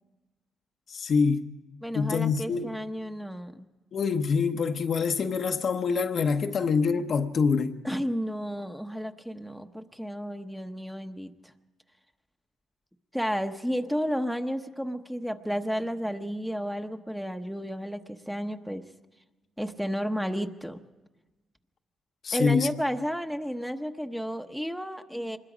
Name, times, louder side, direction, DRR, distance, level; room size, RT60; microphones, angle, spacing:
voice 1, 0.9-1.4 1.9-2.8 3.9-7.8 22.2-22.7, left 5 dB, 55° left, 0.9 m, -25 dB
voice 2, 1.8-3.7 7.8-11.3 13.1-18.9 19.6-20.8 22.3-25.4, equal, ahead, 1.0 m, -32 dB
25.0 x 21.0 x 5.1 m
cardioid pair, 90°, 0 cm